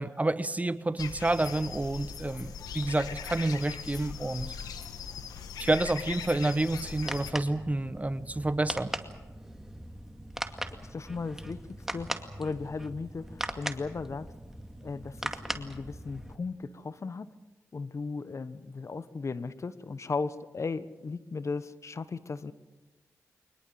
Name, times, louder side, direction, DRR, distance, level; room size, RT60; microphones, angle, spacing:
voice 1, 0.0-4.5 5.6-8.9, right 2 dB, 25° right, 1.2 m, -29 dB
sound 1, 1.0-7.3, left 7 dB, 85° left, 1.7 m, -40 dB
sound 2, 6.7-16.4, right 1 dB, 5° right, 2.2 m, -40 dB
voice 2, 10.9-11.6 11.9-14.3 14.8-17.3 17.7-22.5, left 4 dB, 50° left, 1.2 m, -36 dB
23.5 x 20.5 x 7.7 m
supercardioid pair, 45°, 6 cm